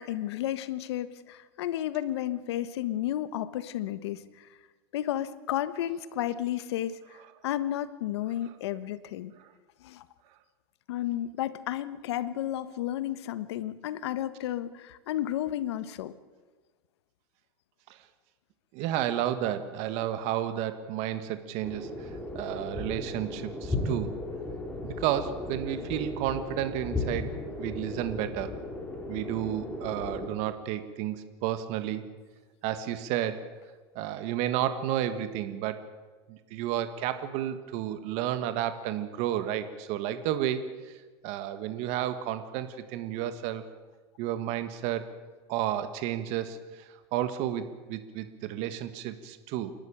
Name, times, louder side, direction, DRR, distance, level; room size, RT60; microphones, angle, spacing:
voice 1, 0.0-4.5 4.9-7.0 7.4-9.3 9.8-10.0 10.9-16.1, left 12 dB, 80° left, 14 dB, 1.3 m, -32 dB
voice 2, 18.7-24.1 24.8-27.3 27.6-28.5 29.1-32.0 32.6-33.5 33.9-35.8 36.3-41.0 41.2-43.6 44.2-45.0 45.5-46.8 47.1-49.7, right 11 dB, 55° right, 10 dB, 1.6 m, -31 dB
sound 1, 21.6-30.3, left 2 dB, 10° left, 4.0 m, -36 dB
28.5 x 12.0 x 8.8 m, 1.3 s
supercardioid pair, 120°, 14 cm